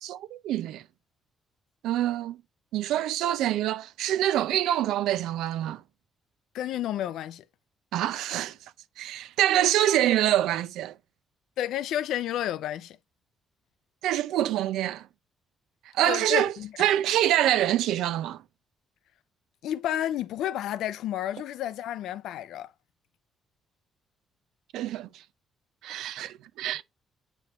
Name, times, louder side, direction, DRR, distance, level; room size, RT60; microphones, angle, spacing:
voice 1, 0.0-0.8 1.8-2.4 2.7-5.8 7.9-8.6 9.0-10.9 14.0-15.1 15.9-16.5 16.8-18.4 24.7-25.1 25.8-26.8, right 12 dB, 90° right, 0.5 m, -25 dB
voice 2, 6.5-7.4 11.6-13.0 16.1-16.7 19.6-22.7, left 11 dB, 85° left, 0.4 m, -31 dB
8.1 x 3.0 x 4.0 m
cardioid pair, 90°, 0 cm